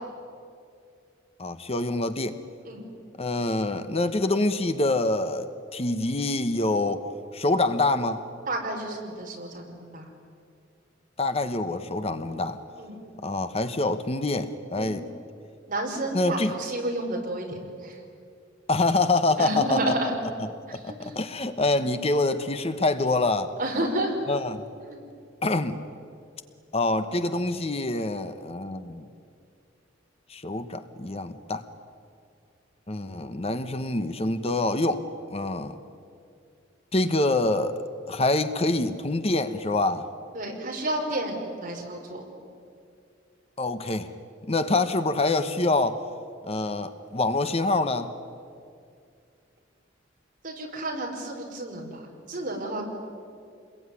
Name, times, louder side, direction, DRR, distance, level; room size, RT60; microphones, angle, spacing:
voice 1, 1.4-2.4 3.2-7.0 7.3-8.2 11.2-12.6 13.2-15.0 16.1-16.5 18.7-19.9 20.4-23.5 24.3-24.6 25.4-25.8 26.7-29.1 30.3-31.6 32.9-35.8 36.9-37.8 38.1-40.1 43.6-44.1 44.5-46.0 46.4-48.1, left 2 dB, 30° left, 10 dB, 1.1 m, -26 dB
voice 2, 8.5-10.1 12.8-13.0 14.8-15.0 15.7-18.0 19.4-20.1 20.8-21.2 21.5-21.6 23.6-24.2 24.9-25.1 40.3-42.2 50.4-52.8, right 1 dB, 45° right, 0 dB, 5.2 m, -31 dB
27.5 x 21.5 x 9.9 m, 2.3 s
head